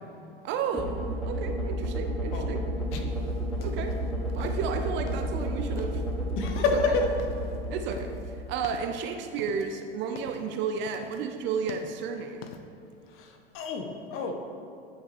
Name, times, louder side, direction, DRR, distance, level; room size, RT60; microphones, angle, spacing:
voice 1, 0.4-0.9 1.3-2.6 3.6-4.0 4.4-6.0 6.7-6.8 7.7-8.1 8.5-12.5, right 6 dB, 35° right, 6 dB, 0.6 m, -32 dB
sound 1, 0.7-8.9, right 1 dB, ahead, 1.1 m, -32 dB
sound 2, 2.9-12.6, left 6 dB, 65° left, 0.7 m, -46 dB
voice 2, 6.4-7.1 13.1-14.3, left 4 dB, 40° left, 4 dB, 1.1 m, -28 dB
10.5 x 5.7 x 3.5 m, 2.7 s
hypercardioid pair, 90°, 31 cm